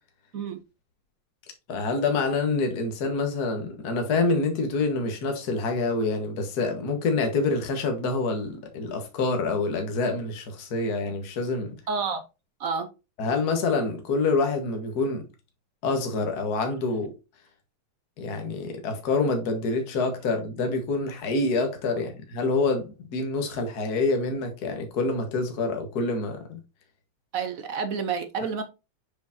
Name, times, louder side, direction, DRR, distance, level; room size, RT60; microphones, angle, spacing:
voice 1, 1.7-11.7 13.2-15.2 15.8-17.1 18.2-26.6, left 3 dB, 50° left, 1.8 m, -26 dB
voice 2, 11.9-12.2 12.6-12.9 27.3-28.6, right 5 dB, 60° right, 0.9 m, -29 dB
7.1 x 5.1 x 2.7 m
omnidirectional pair, 2.4 m